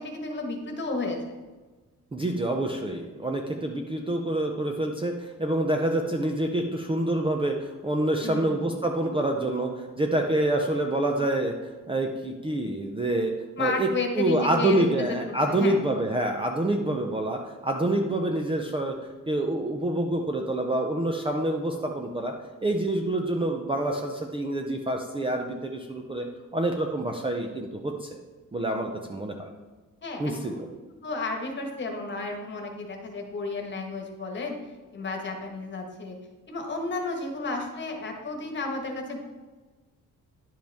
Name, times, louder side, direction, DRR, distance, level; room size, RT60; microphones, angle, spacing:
voice 1, 0.0-1.3 8.2-8.6 13.6-15.8 30.0-30.7 31.0-34.6 34.9-36.2 36.5-39.2, left 3 dB, 35° left, 2 dB, 1.4 m, -32 dB
voice 2, 2.1-13.3 13.6-13.9 14.2-18.9 19.3-22.3 22.6-26.3 26.5-28.2 28.5-29.5 30.2-30.7, right 1 dB, 15° right, 2 dB, 0.6 m, -27 dB
10.5 x 7.6 x 3.5 m, 1.3 s
wide cardioid pair, 170°, 33 cm